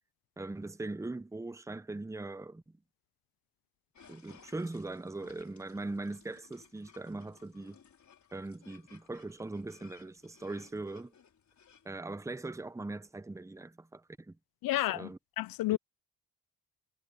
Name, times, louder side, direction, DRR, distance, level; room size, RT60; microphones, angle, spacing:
voice 1, 0.4-2.6 4.1-7.8 8.3-11.1 11.8-14.3 14.9-15.2 15.7-15.8, right 2 dB, 10° right, 0.9 m, -40 dB
sound 1, 3.9-11.9, left 7 dB, 50° left, 4.9 m, -61 dB
voice 2, 14.6-15.1 15.4-15.8, left 16 dB, 70° left, 0.6 m, -30 dB
supercardioid pair, 75°, 36 cm